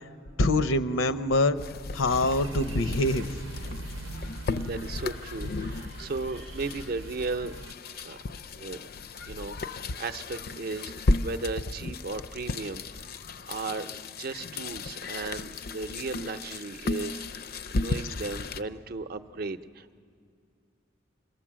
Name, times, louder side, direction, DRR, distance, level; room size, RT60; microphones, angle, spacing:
voice 1, 0.4-1.6 1.9-3.3, left 2 dB, 85° left, 12 dB, 0.7 m, -24 dB
sound 1, 1.6-18.6, left 2 dB, 50° left, 0.4 m, -34 dB
sound 2, 2.1-7.7, right 2 dB, 90° right, 0.7 m, -40 dB
voice 2, 4.5-7.6 8.0-8.2 8.6-8.8 9.3-10.9 11.2-13.0 13.5-13.9 14.2-20.0, right 3 dB, 50° right, 11 dB, 0.6 m, -36 dB
26.5 x 18.5 x 7.5 m, 2.4 s
head